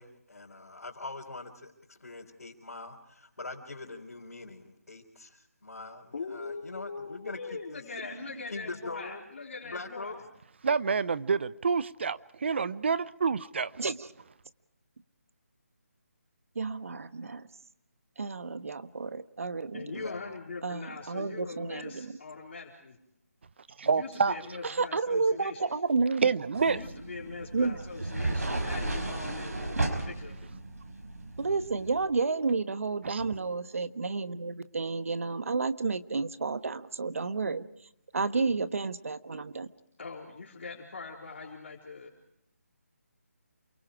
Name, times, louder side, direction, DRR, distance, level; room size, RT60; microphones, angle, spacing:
voice 1, 0.0-7.8 8.5-9.2 9.6-10.2 19.9-20.2, left 3 dB, 85° left, 3.9 m, -43 dB
voice 2, 6.1-10.2 19.7-23.0 23.8-25.6 26.6-30.5 40.0-42.1, left 4 dB, 50° left, 4.0 m, -42 dB
voice 3, 10.6-13.8 23.8-24.4 24.6-24.8 26.2-26.8 33.0-33.2, right 5 dB, 50° right, 0.8 m, -28 dB
voice 4, 13.8-14.1 16.5-17.5 18.2-20.0 20.6-22.1 24.7-26.3 27.5-27.8 31.4-37.7 38.1-39.7, right 4 dB, 65° right, 1.3 m, -31 dB
sound 1, 26.5-32.0, right 2 dB, 90° right, 5.6 m, -34 dB
28.5 x 23.0 x 5.0 m
figure-of-eight pair, 165°, 8 cm